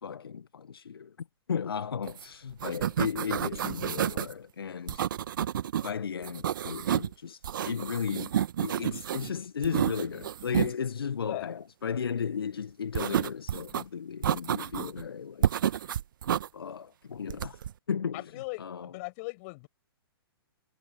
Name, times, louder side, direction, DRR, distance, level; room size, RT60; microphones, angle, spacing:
voice 1, 0.0-5.0 5.8-8.3 8.6-16.0 16.5-17.6 17.9-18.9, left 7 dB, 70° left, 1.5 m, -35 dB
sound 1, 2.1-2.2 2.5-4.3 4.9-5.9 6.2-7.1 7.4-9.3 9.6-10.7 12.9-13.8 14.2-15.0 15.4-16.5 17.3-17.7, right 10 dB, 55° right, 1.5 m, -30 dB
voice 2, 18.1-19.7, left 28 dB, 40° left, 7.3 m, -39 dB
figure-of-eight pair, 115°, 13 cm